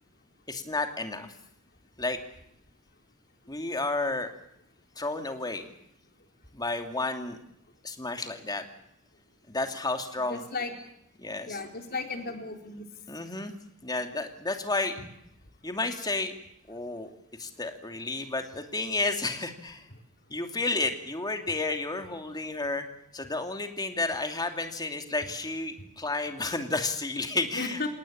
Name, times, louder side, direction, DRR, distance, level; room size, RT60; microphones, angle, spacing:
voice 1, 0.5-1.3 2.0-2.2 3.5-4.3 5.0-5.7 6.5-7.4 7.8-8.6 9.5-10.4 11.2-11.6 13.1-13.5 13.8-15.0 15.6-16.4 16.7-17.1 17.4-19.9 20.3-22.9 23.1-27.9, left 3 dB, 20° left, 5 dB, 2.8 m, -31 dB
voice 2, 10.3-10.7 11.5-12.8 25.8-25.9 27.5-27.9, left 3 dB, 45° left, 4 dB, 4.1 m, -34 dB
28.0 x 18.0 x 8.8 m, 0.75 s
head